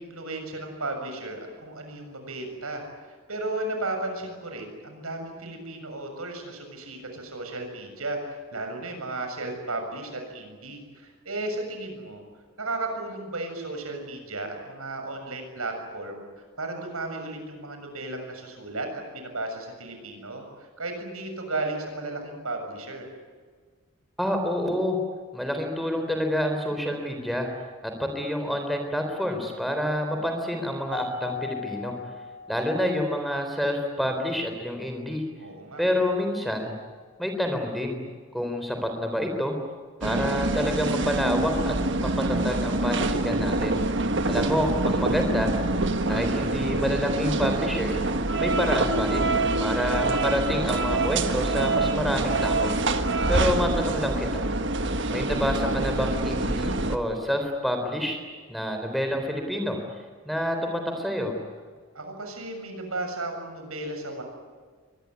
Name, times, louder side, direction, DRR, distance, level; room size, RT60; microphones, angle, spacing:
voice 1, 0.0-12.2 12.6-23.1 35.4-35.8 53.0-53.5 61.9-64.2, right 2 dB, 85° right, 4 dB, 7.0 m, -34 dB
voice 2, 24.2-25.0 25.3-27.5 27.8-31.9 32.5-35.2 35.8-36.7 37.2-38.0 38.3-39.6 40.0-41.7 42.0-43.8 44.3-45.5 46.1-48.0 48.4-49.3 49.6-52.8 53.3-54.5 55.1-58.2 58.5-59.8 60.3-61.4, equal, ahead, 4 dB, 3.8 m, -28 dB
Mallet percussion, 30.9-33.3, left 4 dB, 20° left, 6.9 m, -37 dB
sound 1, 40.0-57.0, right 2 dB, 55° right, 1.5 m, -25 dB
24.0 x 19.5 x 9.9 m, 1.5 s
head